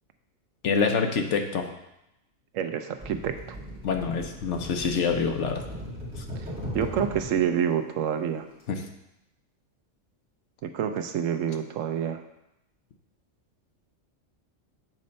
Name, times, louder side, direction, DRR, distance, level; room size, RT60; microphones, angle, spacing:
voice 1, 0.6-1.6 3.8-5.6 6.2-6.3 8.7-8.8, left 5 dB, 70° left, 4 dB, 1.1 m, -26 dB
voice 2, 2.5-3.3 6.7-8.5 10.6-12.2, right 8 dB, 80° right, 8 dB, 1.0 m, -27 dB
sound 1, 3.0-7.4 8.5-8.7, equal, 5° right, 2.1 m, -38 dB
7.8 x 4.3 x 5.2 m, 0.86 s
omnidirectional pair, 1.3 m